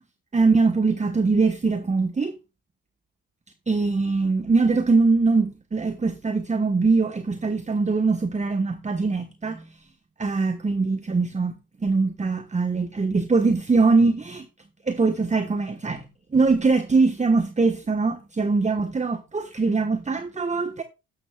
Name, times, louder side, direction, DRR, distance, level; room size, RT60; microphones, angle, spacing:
voice 1, 0.3-2.4 3.7-9.6 10.2-14.5 14.9-20.8, right 4 dB, 20° right, 1.2 m, -22 dB
13.0 x 12.0 x 2.3 m
hypercardioid pair, 55°, 34 cm